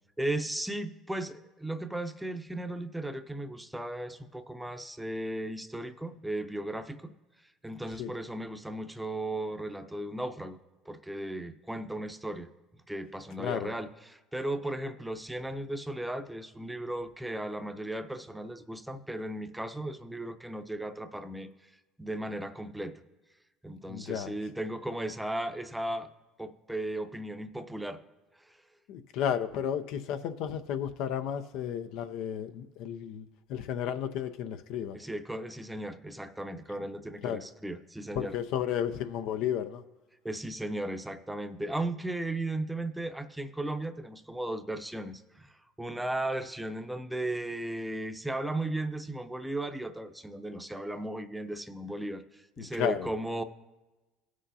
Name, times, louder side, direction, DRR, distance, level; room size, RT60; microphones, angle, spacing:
voice 1, 0.2-7.1 7.6-10.6 10.9-12.5 12.9-21.5 22.0-23.0 23.6-26.1 26.4-28.0 28.5-28.6 34.9-38.3 40.2-53.4, right 1 dB, 5° right, 0.6 m, -36 dB
voice 2, 13.4-13.7 23.9-24.3 28.9-35.0 37.2-37.4 38.2-39.8 52.6-53.1, left 9 dB, 70° left, 0.5 m, -33 dB
18.0 x 6.3 x 2.7 m
supercardioid pair, 85°, 0 cm